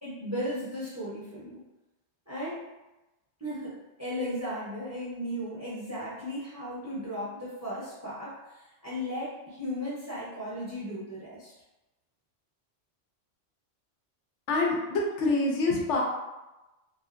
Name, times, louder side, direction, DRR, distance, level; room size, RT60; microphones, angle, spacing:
voice 1, 0.0-1.6 2.3-2.6 3.4-11.5, equal, 15° right, -8 dB, 0.6 m, -36 dB
voice 2, 14.5-16.0, left 3 dB, 75° left, -1 dB, 0.9 m, -26 dB
2.7 x 2.5 x 2.4 m, 1.0 s
omnidirectional pair, 1.2 m